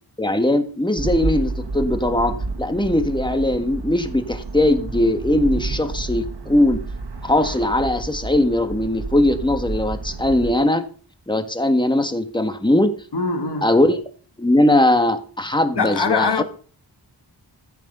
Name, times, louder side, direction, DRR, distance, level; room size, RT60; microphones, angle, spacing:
voice 1, 0.2-6.8 7.2-10.9 11.3-12.9 13.6-14.0 14.4-16.4, left 1 dB, 10° left, 1.6 m, -20 dB
sound 1, 1.0-10.5, right 3 dB, 70° right, 2.1 m, -30 dB
voice 2, 13.1-13.7 15.7-16.4, left 4 dB, 70° left, 1.5 m, -22 dB
14.0 x 9.4 x 5.5 m
wide cardioid pair, 60°, 42 cm